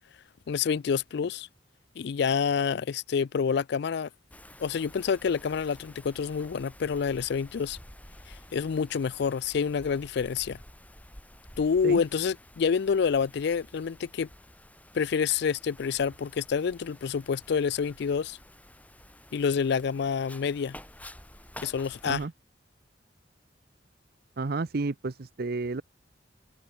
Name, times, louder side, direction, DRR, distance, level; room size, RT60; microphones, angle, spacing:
voice 1, 0.5-1.5 2.0-4.1 4.6-7.8 8.3-10.6 11.6-14.3 14.9-18.4 19.3-20.8 21.6-22.2, left 6 dB, 65° left, 0.4 m, -28 dB
Wind, 4.3-22.3, left 1 dB, 10° left, 6.7 m, -51 dB
voice 2, 24.4-25.8, right 3 dB, 55° right, 0.7 m, -31 dB
head